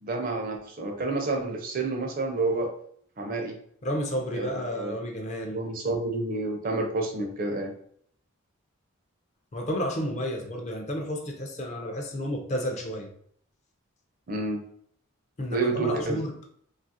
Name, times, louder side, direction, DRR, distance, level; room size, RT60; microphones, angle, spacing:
voice 1, 0.0-2.7 3.2-3.6 4.3-4.9 5.5-7.7 14.3-14.6 15.5-16.2, right 3 dB, 40° right, 0.5 m, -29 dB
voice 2, 3.8-5.6 9.5-13.1 15.4-16.5, equal, 35° left, 0.4 m, -31 dB
2.7 x 2.4 x 2.6 m
head